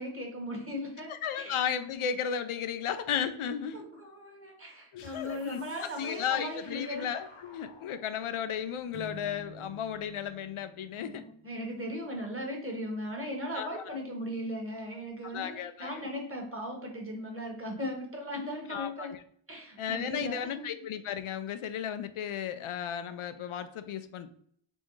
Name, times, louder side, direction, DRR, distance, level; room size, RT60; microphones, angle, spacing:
voice 1, 0.0-1.5 3.7-7.1 11.0-19.1 19.5-20.7, equal, 25° right, 1 dB, 1.5 m, -38 dB
voice 2, 1.1-3.8 4.9-5.6 6.0-11.2 13.5-14.0 15.2-16.1 18.7-19.2 19.8-24.3, left 8 dB, 85° left, 10 dB, 0.6 m, -34 dB
sound 1, 5.0-10.3, left 3 dB, 60° left, 1.0 m, -56 dB
Acoustic guitar / Strum, 8.9-12.2, right 5 dB, 65° right, 1.2 m, -50 dB
4.3 x 3.5 x 3.1 m, 0.62 s
wide cardioid pair, 85°, 48 cm